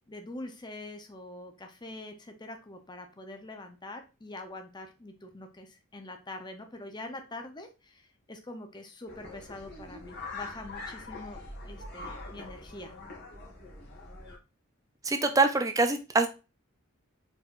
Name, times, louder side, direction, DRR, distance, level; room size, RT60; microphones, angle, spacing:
voice 1, 0.1-12.9, left 2 dB, 20° left, 6 dB, 0.7 m, -44 dB
sound 1, 9.1-14.4, left 2 dB, 50° left, 1.7 m, -43 dB
voice 2, 15.0-16.3, right 3 dB, 15° right, 7 dB, 0.4 m, -24 dB
4.6 x 4.5 x 2.5 m, 0.29 s
head